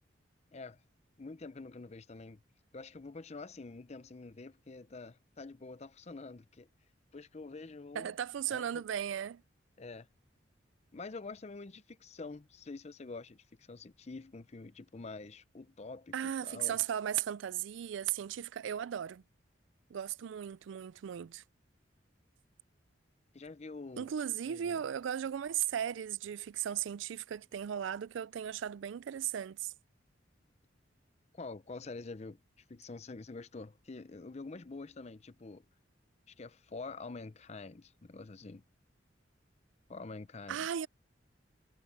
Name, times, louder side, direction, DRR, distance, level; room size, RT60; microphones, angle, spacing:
voice 1, 1.2-2.4 2.7-6.7 7.1-8.1 8.5-8.8 9.8-10.1 10.9-16.8 23.3-24.1 24.5-24.8 31.3-35.7 36.3-38.6 39.9-40.7, left 3 dB, 35° left, 0.6 m, -47 dB
voice 2, 7.9-9.4 16.1-19.2 19.9-21.4 24.0-29.7 40.5-40.9, right 9 dB, 80° right, 0.4 m, -36 dB
head